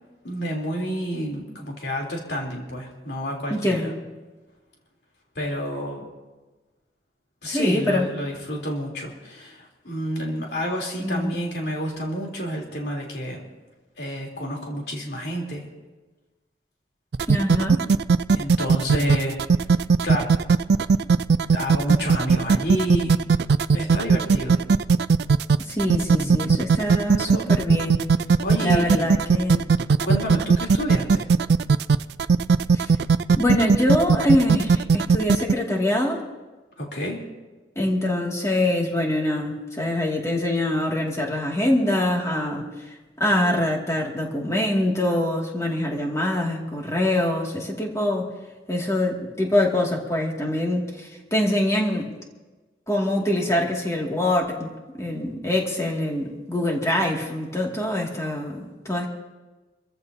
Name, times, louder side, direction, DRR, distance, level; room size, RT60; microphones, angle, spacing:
voice 1, 0.2-3.9 5.4-6.1 7.4-13.4 14.0-15.6 18.3-19.4 20.0-20.3 21.5-23.2 23.7-24.6 26.2-26.7 27.3-27.4 28.4-29.1 30.0-31.3 36.8-37.2, equal, 65° left, -1 dB, 3.6 m, -29 dB
voice 2, 3.5-3.9 7.4-8.1 11.0-11.3 17.3-17.8 25.6-28.0 28.6-29.7 32.7-32.9 33.4-36.2 37.8-42.7 43.2-48.3 48.7-52.1 52.9-54.7 55.0-59.1, left 1 dB, 15° left, -1 dB, 2.4 m, -24 dB
sound 1, 17.1-35.5, right 5 dB, 65° right, 0.4 m, -18 dB
27.0 x 15.0 x 2.8 m, 1.2 s
head